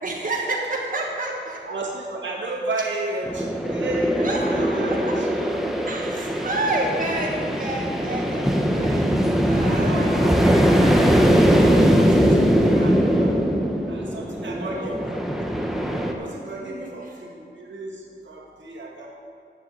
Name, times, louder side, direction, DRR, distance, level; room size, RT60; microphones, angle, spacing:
voice 1, 0.0-1.6 4.2-4.5 4.9-5.1 5.8-9.2 9.5-10.5 10.8-11.0 14.4-15.1 16.6-16.9 18.5-18.6, right 2 dB, 45° right, -2 dB, 1.5 m, -29 dB
voice 2, 1.7-5.7 6.1-6.5 8.0-8.2 9.8-13.4 13.9-15.6 16.2-19.1, right 2 dB, 80° right, -2 dB, 2.1 m, -33 dB
sound 1, 3.3-16.1, equal, ahead, 1.1 m, -21 dB
10.5 x 7.7 x 7.9 m, 2.5 s
wide cardioid pair, 105°, 19 cm